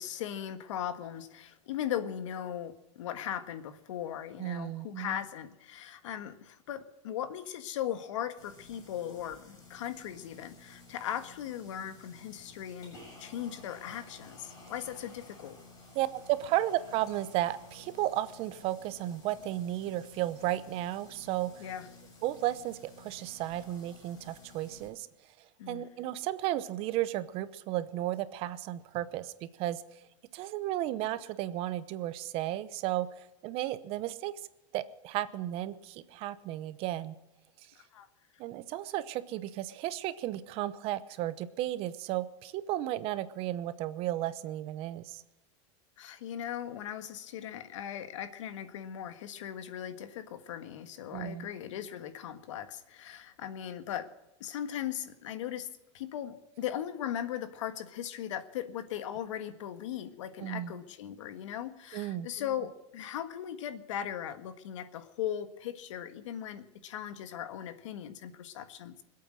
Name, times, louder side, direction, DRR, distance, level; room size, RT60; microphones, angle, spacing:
voice 1, 0.0-15.6 21.6-21.9 25.6-25.9 37.7-38.1 46.0-54.1 54.4-55.7 55.9-69.0, left 10 dB, 75° left, 10 dB, 1.6 m, -38 dB
voice 2, 4.4-5.2 15.9-21.7 22.2-25.1 25.7-29.8 30.3-33.1 33.4-34.3 34.7-37.2 38.4-45.2 51.1-51.5 60.4-60.8 61.9-62.3, right 14 dB, 40° right, 14 dB, 0.8 m, -34 dB
sound 1, 8.4-24.9, left 2 dB, 25° left, 7.4 m, -54 dB
25.0 x 8.5 x 6.3 m, 1.0 s
supercardioid pair, 155°, 16 cm